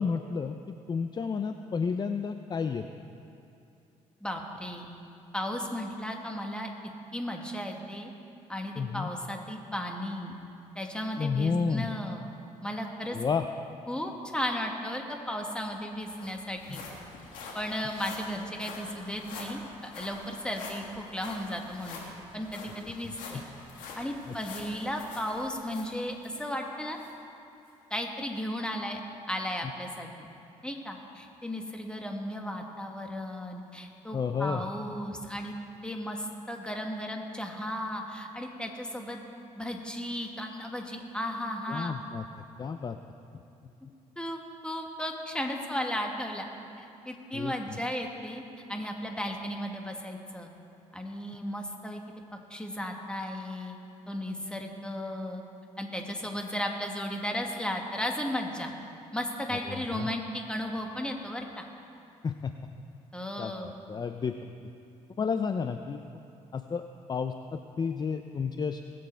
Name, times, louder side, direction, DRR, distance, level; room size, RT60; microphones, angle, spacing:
voice 1, 0.0-2.8 8.8-9.1 11.2-11.9 13.1-13.5 16.7-16.8 22.8-22.9 24.3-24.4 34.1-34.6 41.7-42.2 42.6-43.0 47.3-47.8 59.7-60.1 62.2-62.5 63.4-64.5 65.2-66.0 66.5-66.8 67.1-68.8, left 5 dB, 30° left, 8 dB, 0.5 m, -31 dB
voice 2, 4.2-4.9 5.3-6.7 7.1-8.1 8.5-10.4 10.7-12.3 12.6-13.2 13.9-16.8 17.5-22.0 22.3-23.4 23.9-27.0 27.9-29.0 29.3-30.3 30.6-35.5 35.8-39.2 39.5-42.0 44.1-46.5 46.8-48.4 48.7-50.5 50.9-52.0 52.5-53.8 54.1-55.4 55.8-58.7 59.1-61.6 63.1-63.7, equal, 5° left, 2 dB, 1.7 m, -35 dB
sound 1, 15.3-15.4 15.6-26.5 27.0-27.1 27.7-27.8, left 3 dB, 90° left, 1.8 m, -45 dB
19.5 x 7.8 x 4.5 m, 2.7 s
supercardioid pair, 75°, 13 cm